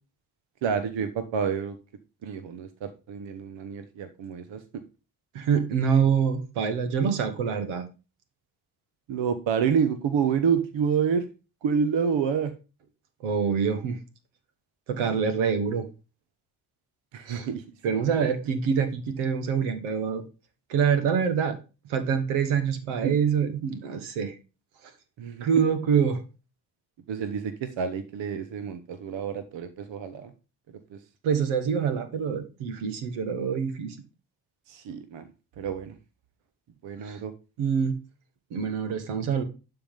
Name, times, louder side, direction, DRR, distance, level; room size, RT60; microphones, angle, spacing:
voice 1, 0.6-1.8 2.2-4.6 9.1-11.3 11.6-12.5 17.1-17.6 18.2-18.3 23.0-23.1 25.2-25.5 27.1-30.3 30.9-31.0 34.7-35.2 35.6-35.9 36.8-37.3, right 7 dB, 60° right, 10 dB, 1.1 m, -28 dB
voice 2, 5.3-7.8 13.2-14.0 14.9-15.9 17.3-17.5 17.8-20.2 20.7-21.6 21.9-24.3 25.4-26.2 31.2-34.0 37.0-37.2 37.6-37.9 38.5-39.4, right 6 dB, 75° right, 9 dB, 1.3 m, -25 dB
11.5 x 3.9 x 5.2 m, 0.32 s
hypercardioid pair, 40°, 50 cm